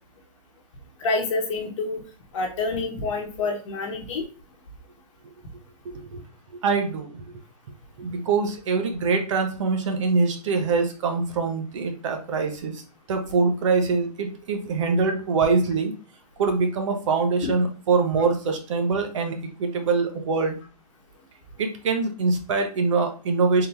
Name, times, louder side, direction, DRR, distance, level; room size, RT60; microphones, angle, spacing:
voice 1, 1.0-2.0 2.3-4.2 17.4-17.5, left 3 dB, 50° left, 1 dB, 1.2 m, -27 dB
voice 2, 6.6-7.2 8.0-12.8 13.1-15.9 16.4-20.6 21.6-23.7, right 4 dB, 50° right, 5 dB, 0.9 m, -24 dB
3.8 x 2.7 x 3.4 m, 0.37 s
hypercardioid pair, 150°, 21 cm